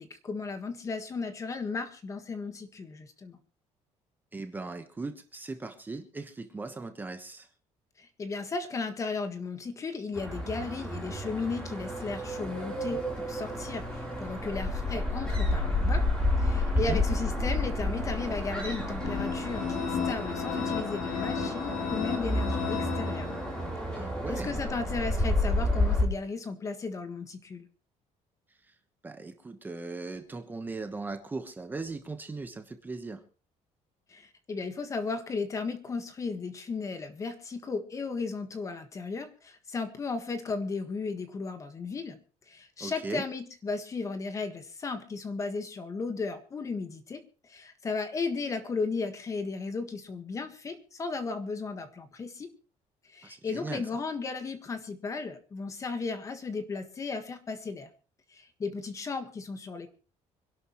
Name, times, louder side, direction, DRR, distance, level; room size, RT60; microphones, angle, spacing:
voice 1, 0.0-3.4 8.0-16.0 16.4-23.3 24.3-27.7 34.1-42.2 42.5-47.2 47.5-52.5 53.1-57.9 58.3-59.9, left 4 dB, 25° left, 8 dB, 1.5 m, -35 dB
voice 2, 4.3-7.5 16.7-17.0 24.0-24.6 29.0-33.2 42.8-43.2 53.2-53.8, right 3 dB, 15° right, 6 dB, 1.2 m, -38 dB
sound 1, 10.2-26.0, left 1 dB, 5° left, 3.8 m, -30 dB
sound 2, 19.0-23.8, left 6 dB, 70° left, 3.2 m, -33 dB
26.0 x 11.5 x 3.1 m, 0.36 s
cardioid pair, 170°, 13 cm